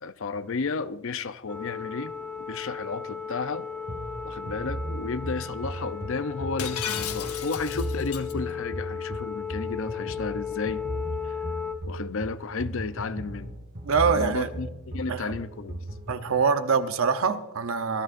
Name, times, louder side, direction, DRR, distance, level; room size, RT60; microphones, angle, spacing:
voice 1, 0.0-3.7 4.2-10.8 11.2-11.4 11.9-13.6 14.1-15.8, left 4 dB, 60° left, 0.6 m, -33 dB
sound 1, 1.5-11.7, left 7 dB, 5° left, 0.8 m, -35 dB
sound 2, 3.9-16.3, right 1 dB, 45° right, 1.3 m, -36 dB
Shatter, 6.6-8.3, left 9 dB, 90° left, 1.0 m, -34 dB
voice 2, 13.9-14.5 15.1-15.3 16.1-18.0, right 5 dB, 65° right, 0.8 m, -24 dB
24.0 x 14.0 x 2.5 m
head